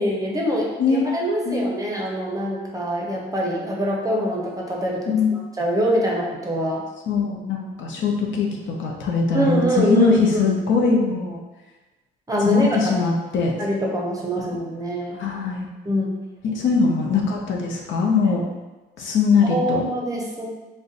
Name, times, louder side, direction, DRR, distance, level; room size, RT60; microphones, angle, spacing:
voice 1, 0.0-6.8 9.3-10.5 12.3-12.8 13.6-15.2 15.9-16.1 19.4-20.4, equal, 15° right, -2 dB, 0.7 m, -24 dB
voice 2, 5.1-5.4 7.1-11.4 12.4-13.5 14.5-14.6 15.1-15.7 16.5-18.4 19.0-19.9, left 4 dB, 70° left, 0 dB, 0.6 m, -21 dB
2.5 x 2.2 x 3.7 m, 1.1 s
cardioid pair, 90°, 20 cm